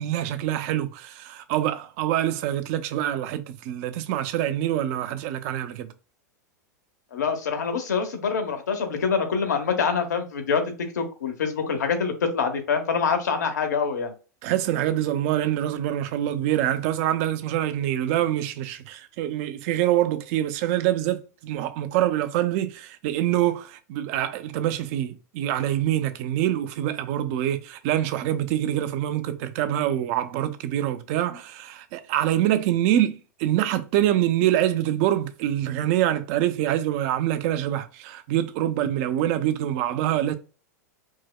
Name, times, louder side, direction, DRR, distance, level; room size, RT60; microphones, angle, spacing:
voice 1, 0.0-5.9 14.4-40.3, right 12 dB, 55° right, 0.5 m, -25 dB
voice 2, 7.1-10.6 10.9-14.1, left 6 dB, 85° left, 0.9 m, -25 dB
4.6 x 2.1 x 2.3 m
hypercardioid pair, 105°, 9 cm